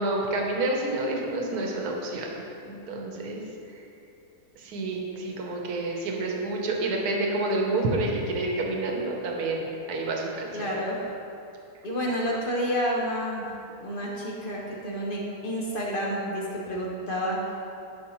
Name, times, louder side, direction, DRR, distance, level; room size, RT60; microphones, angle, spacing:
voice 1, 0.0-3.4 4.6-10.7, right 2 dB, 80° right, 0 dB, 1.4 m, -29 dB
voice 2, 10.5-11.1 11.8-13.4 13.8-17.4, equal, 40° left, -3 dB, 1.0 m, -29 dB
11.0 x 5.3 x 3.1 m, 2.6 s
omnidirectional pair, 1.6 m